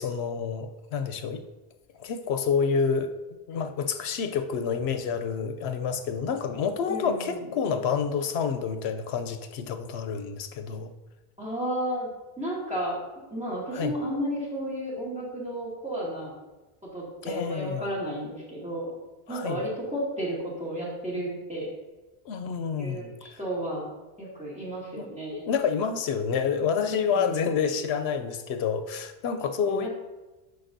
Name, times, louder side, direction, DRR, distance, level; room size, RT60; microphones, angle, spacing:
voice 1, 0.0-1.4 2.0-3.1 3.5-10.9 13.7-14.0 17.2-17.9 19.3-19.7 22.2-23.1 25.0-29.9, left 6 dB, 80° left, 8 dB, 0.9 m, -28 dB
voice 2, 6.9-7.4 11.4-13.0 13.3-16.3 16.9-18.9 19.3-21.7 22.8-23.9 24.2-25.4 26.8-27.4 29.6-29.9, right 1 dB, 5° right, -7 dB, 2.2 m, -33 dB
10.5 x 4.8 x 2.6 m, 1.1 s
omnidirectional pair, 1.1 m